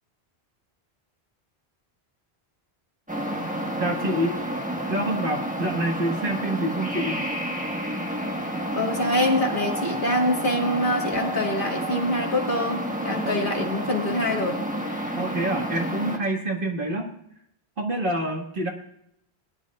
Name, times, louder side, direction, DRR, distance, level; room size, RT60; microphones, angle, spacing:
sound 1, 3.1-16.2, right 1 dB, 10° right, 1.3 m, -30 dB
voice 1, 3.8-4.4 4.9-7.2 15.2-17.1 17.8-18.7, right 1 dB, 55° right, 1 dB, 2.0 m, -27 dB
voice 2, 8.7-14.6, left 1 dB, 50° left, 0 dB, 2.2 m, -25 dB
19.5 x 11.0 x 2.5 m, 0.73 s
omnidirectional pair, 1.1 m